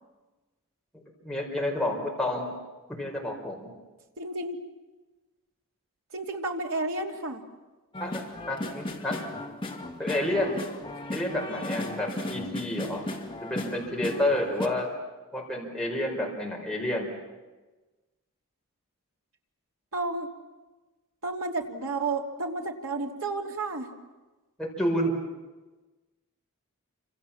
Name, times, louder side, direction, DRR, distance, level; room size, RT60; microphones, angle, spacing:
voice 1, 1.2-2.5 2.9-3.7 8.0-8.2 8.5-9.2 10.0-10.5 11.1-13.0 13.4-14.9 15.3-17.1 24.8-25.1, left 1 dB, 5° left, -2 dB, 5.0 m, -29 dB
voice 2, 4.2-4.6 6.1-7.4 19.9-20.3 21.2-23.9, right 3 dB, 65° right, 2 dB, 3.1 m, -31 dB
sound 1, 7.9-14.7, left 1 dB, 25° left, 2.3 m, -35 dB
29.0 x 26.5 x 7.3 m, 1.2 s
head